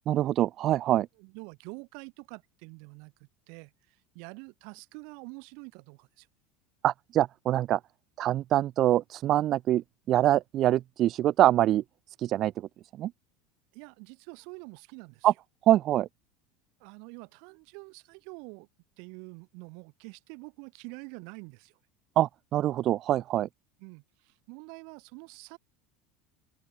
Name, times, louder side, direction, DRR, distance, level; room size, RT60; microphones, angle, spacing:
voice 1, 0.1-1.1 6.8-7.8 8.2-11.8 12.2-12.7 13.0-13.1 15.2-15.3 15.7-16.1 22.2-23.5, right 13 dB, 35° right, 0.6 m, -24 dB
voice 2, 1.2-6.3 13.7-15.3 16.8-18.7 19.0-21.8 23.8-25.6, right 37 dB, 60° right, 5.6 m, -46 dB
cardioid pair, 155°, 0 cm